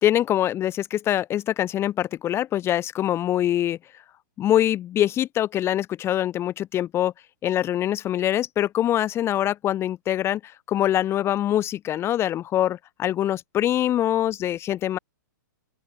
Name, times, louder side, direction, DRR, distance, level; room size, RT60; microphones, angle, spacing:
voice 1, 0.0-3.8 4.4-7.1 7.4-15.0, left 12 dB, 25° left, 0.8 m, -24 dB
open air
hypercardioid pair, 120°, 10 cm